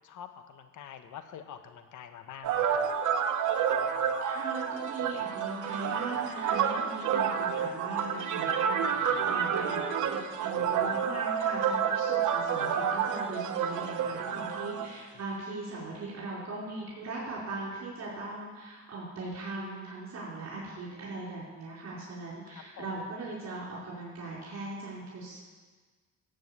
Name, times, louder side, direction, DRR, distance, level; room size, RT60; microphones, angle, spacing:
voice 1, 0.0-2.8 9.0-9.8 14.4-15.0 22.5-22.9, left 9 dB, 75° left, 8 dB, 1.3 m, -47 dB
sound 1, 2.4-14.9, right 7 dB, 80° right, 1.3 m, -29 dB
voice 2, 4.2-25.4, right 2 dB, 65° right, -6 dB, 4.7 m, -39 dB
14.5 x 8.2 x 8.1 m, 1.4 s
cardioid pair, 90°, 30 cm